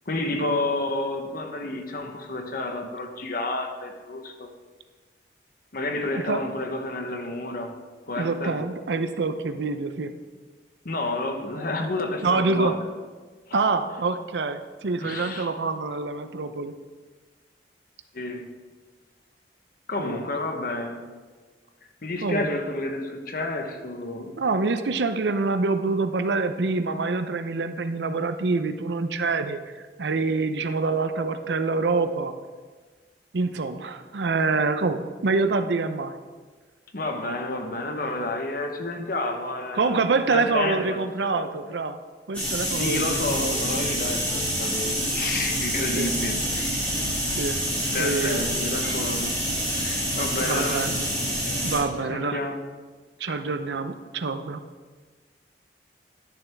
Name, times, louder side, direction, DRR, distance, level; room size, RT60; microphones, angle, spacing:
voice 1, 0.1-4.5 5.7-7.8 8.1-8.6 10.8-12.9 13.5-13.6 15.0-15.5 18.1-18.5 19.9-21.0 22.0-24.4 36.9-41.5 42.8-46.8 47.9-50.9 52.0-52.6 53.3-53.4, left 2 dB, 55° left, 5 dB, 1.0 m, -30 dB
voice 2, 8.2-10.1 12.2-12.7 13.5-16.7 20.0-20.2 22.2-22.5 24.4-29.6 30.0-32.3 33.3-36.1 39.8-42.0 42.3-43.6 45.9-46.1 47.3-47.6 48.0-48.6 50.4-51.0 51.6-52.4 53.2-54.6, right 3 dB, 80° right, 9 dB, 0.6 m, -26 dB
sound 1, 42.3-51.8, equal, 10° left, 3.0 m, -27 dB
11.5 x 6.9 x 3.5 m, 1.4 s
head